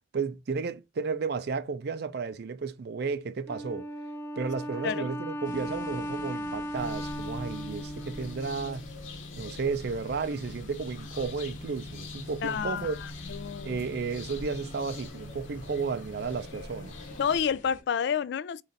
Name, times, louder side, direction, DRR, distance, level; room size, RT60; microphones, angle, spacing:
voice 1, 0.1-3.9 4.4-8.8 9.4-13.0 13.6-17.0, right 5 dB, 55° right, 0.4 m, -33 dB
Wind instrument woodwind instrument, 3.5-8.9, equal, 10° left, 0.6 m, -37 dB
sound 1, 5.4-17.8, left 1 dB, 40° left, 1.0 m, -51 dB
sound 2, 6.7-17.4, left 2 dB, 85° left, 1.2 m, -42 dB
voice 2, 12.4-12.9 13.3-13.8 17.2-18.6, left 7 dB, 60° left, 0.3 m, -29 dB
3.9 x 3.2 x 3.9 m
head